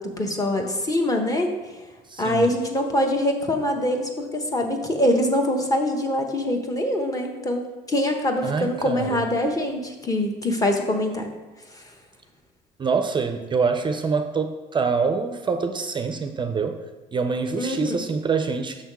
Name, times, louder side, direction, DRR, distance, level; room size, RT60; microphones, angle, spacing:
voice 1, 0.0-1.5 2.2-11.3 11.7-11.8 17.6-18.0, left 1 dB, 20° left, 4 dB, 0.9 m, -24 dB
voice 2, 2.1-2.5 8.4-9.2 12.8-16.8 17.1-18.8, right 5 dB, 30° right, 7 dB, 0.4 m, -25 dB
6.6 x 3.5 x 6.0 m, 1.2 s
cardioid pair, 110°, 17 cm